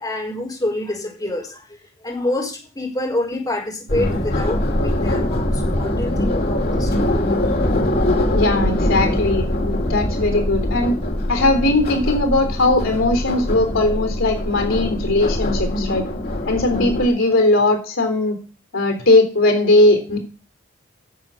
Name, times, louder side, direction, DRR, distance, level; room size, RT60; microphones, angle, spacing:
voice 1, 0.0-7.0, left 1 dB, 20° left, -2 dB, 4.4 m, -27 dB
sound 1, 3.9-17.1, left 1 dB, 50° left, 2.5 m, -22 dB
voice 2, 8.3-10.9 11.3-16.1 16.5-18.4 18.7-20.2, left 2 dB, 70° left, 5 dB, 3.6 m, -18 dB
10.5 x 7.9 x 8.9 m, 0.37 s
head